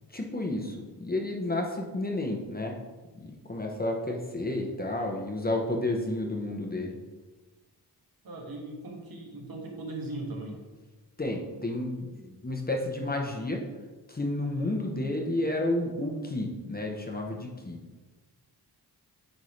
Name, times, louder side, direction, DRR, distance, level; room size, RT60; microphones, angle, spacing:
voice 1, 0.1-2.8 3.1-7.0 11.2-13.7 14.1-17.8, left 1 dB, 20° left, 0 dB, 0.9 m, -31 dB
voice 2, 8.2-10.6, right 2 dB, 55° right, -1 dB, 1.6 m, -38 dB
9.4 x 3.7 x 3.2 m, 1.3 s
wide cardioid pair, 95°, 41 cm